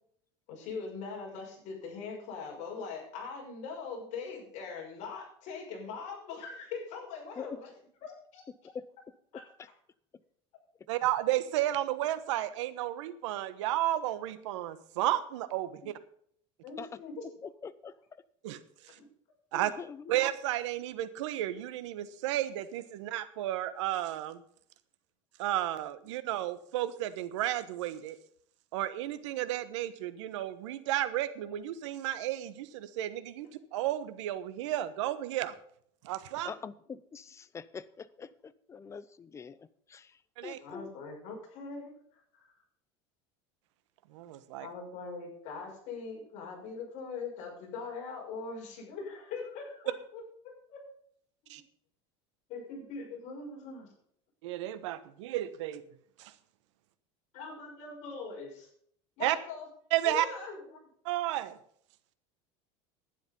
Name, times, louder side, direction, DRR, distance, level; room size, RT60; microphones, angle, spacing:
voice 1, 0.5-7.7 8.0-8.4 16.6-17.3 18.9-19.1 20.0-20.2 40.6-41.9 42.3-42.5 44.6-50.8 51.4-51.6 52.5-53.9 57.3-58.7 59.2-59.7 60.0-60.8, left 4 dB, 55° left, 0 dB, 6.1 m, -41 dB
voice 2, 10.9-15.9 18.4-18.6 18.9-19.0 19.5-19.7 20.1-24.4 25.4-28.2 28.7-35.5 36.0-36.5 40.4-40.6 44.1-44.7 51.5-51.6 54.4-55.8 56.2-56.3 59.2-59.4 59.9-60.3 61.0-61.6, right 14 dB, 85° right, 13 dB, 1.2 m, -32 dB
voice 3, 17.4-18.2 19.5-20.1 36.4-40.9, left 6 dB, 20° left, 16 dB, 0.6 m, -44 dB
11.5 x 10.0 x 5.4 m, 0.64 s
supercardioid pair, 135°, 15 cm